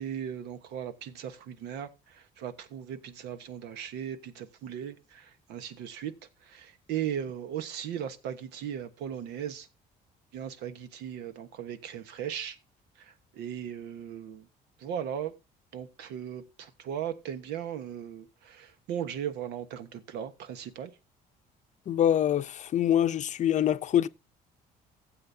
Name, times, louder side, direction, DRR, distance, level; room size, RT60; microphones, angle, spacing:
voice 1, 0.0-6.1 6.4-9.7 10.3-12.6 13.0-14.5 14.8-15.3 15.7-20.9, right 9 dB, 85° right, 1.2 m, -37 dB
voice 2, 21.9-24.1, left 10 dB, 45° left, 0.6 m, -25 dB
15.5 x 7.8 x 2.7 m
cardioid pair, 110°, 17 cm